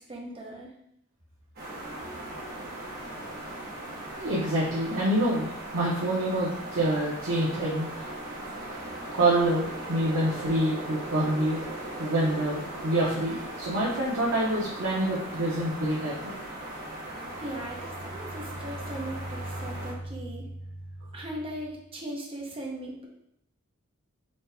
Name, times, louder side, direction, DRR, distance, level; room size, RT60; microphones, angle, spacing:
voice 1, 0.1-0.7 17.0-20.5 21.1-23.0, right 1 dB, 30° right, -2 dB, 0.9 m, -39 dB
sound 1, 1.6-19.9, right 1 dB, 50° right, 1.2 m, -39 dB
voice 2, 4.1-5.5 5.7-8.0 9.1-11.6 12.0-16.3, right 1 dB, 75° right, -8 dB, 1.0 m, -26 dB
sound 2, 17.1-21.9, right 1 dB, 65° left, 1.0 m, -41 dB
4.2 x 3.3 x 3.4 m, 0.77 s
head